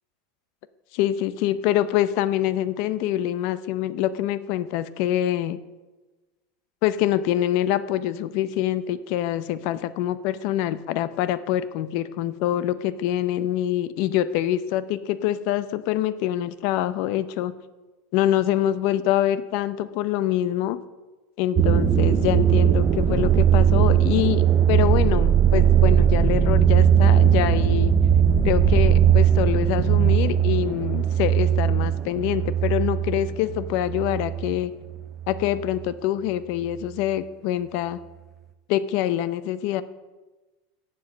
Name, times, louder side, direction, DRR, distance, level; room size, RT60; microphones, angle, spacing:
voice 1, 0.9-5.6 6.8-17.5 18.1-20.8 21.4-24.4 24.7-27.9 28.4-34.7 35.3-38.0 38.7-39.8, left 12 dB, 55° left, 15 dB, 0.5 m, -25 dB
sound 1, 21.6-34.6 34.9-35.5, right 9 dB, 25° right, 0.6 m, -19 dB
7.1 x 7.1 x 7.5 m, 1.2 s
supercardioid pair, 155°, 0 cm